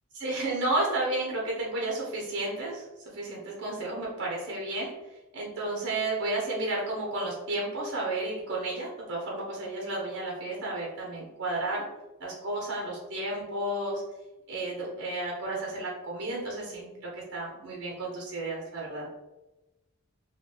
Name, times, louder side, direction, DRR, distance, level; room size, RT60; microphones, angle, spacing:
voice 1, 0.1-2.8 3.1-4.9 5.3-11.8 12.2-14.0 14.5-19.2, right 2 dB, 55° right, -3 dB, 0.9 m, -32 dB
3.8 x 2.3 x 3.4 m, 1.0 s
head